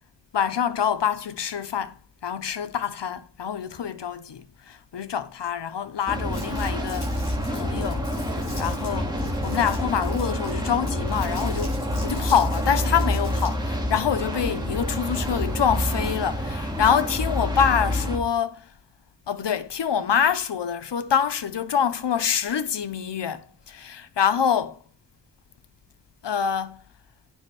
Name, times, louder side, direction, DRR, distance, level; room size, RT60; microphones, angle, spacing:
voice 1, 0.3-2.0 2.2-7.2 7.5-8.1 8.3-18.7 19.3-24.8 26.2-26.8, left 8 dB, 85° left, 0.8 m, -26 dB
sound 1, 6.1-18.2, equal, 10° right, 2.1 m, -27 dB
Crumpling crinkling, 6.3-13.7, left 1 dB, 60° left, 5.6 m, -44 dB
9.3 x 5.2 x 4.8 m
wide cardioid pair, 70°, 41 cm